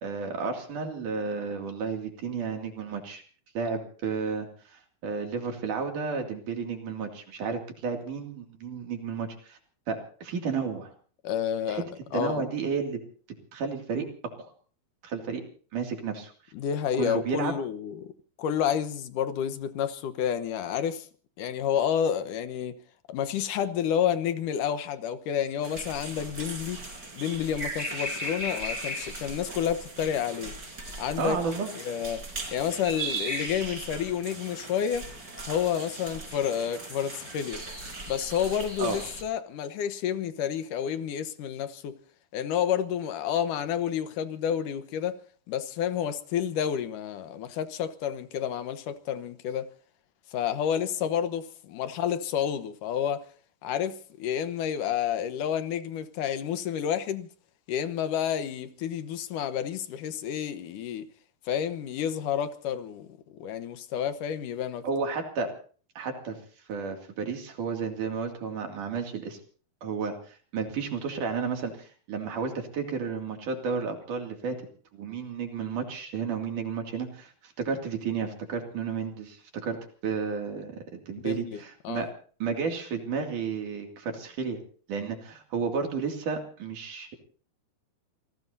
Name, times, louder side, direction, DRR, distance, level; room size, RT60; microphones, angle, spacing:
voice 1, 0.0-3.2 3.6-9.6 9.9-10.9 11.7-11.8 12.1-13.0 13.5-14.1 14.4-14.5 15.0-15.4 15.7-16.3 16.9-17.5 31.2-31.7 38.8-39.0 64.8-65.5 66.0-66.4 66.7-69.4 69.8-74.6 74.9-79.8 80.0-82.1 82.4-84.6 84.9-87.1, right 5 dB, 60° right, 3.9 m, -32 dB
voice 2, 11.2-12.4 16.5-18.1 18.4-21.1 21.4-22.8 23.1-26.8 27.2-30.5 31.0-31.4 31.8-32.2 32.5-35.1 35.4-37.6 38.1-42.0 42.3-45.2 45.5-49.7 50.3-53.3 53.6-57.3 57.7-61.1 61.5-63.1 63.4-64.9 81.2-82.1, left 9 dB, 70° left, 2.5 m, -30 dB
sound 1, 25.6-39.2, right 1 dB, 25° right, 4.9 m, -38 dB
28.0 x 18.5 x 2.8 m
omnidirectional pair, 4.2 m